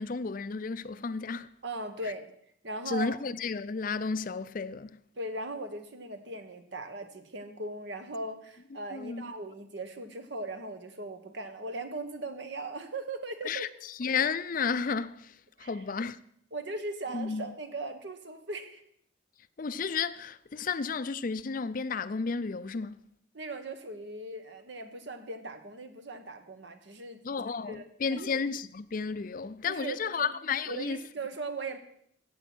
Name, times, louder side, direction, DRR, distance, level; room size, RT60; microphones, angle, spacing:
voice 1, 0.0-1.5 2.9-5.0 8.9-9.3 13.4-13.7 14.0-15.3 15.6-16.2 17.1-17.4 19.6-23.0 27.2-31.0, left 5 dB, 45° left, 0.5 m, -32 dB
voice 2, 1.6-2.3 2.6-3.2 5.2-13.7 15.6-15.8 16.5-18.8 23.3-27.2 27.7-28.3 29.6-30.3 30.7-31.8, right 2 dB, 65° right, 1.4 m, -39 dB
15.0 x 8.8 x 6.1 m
head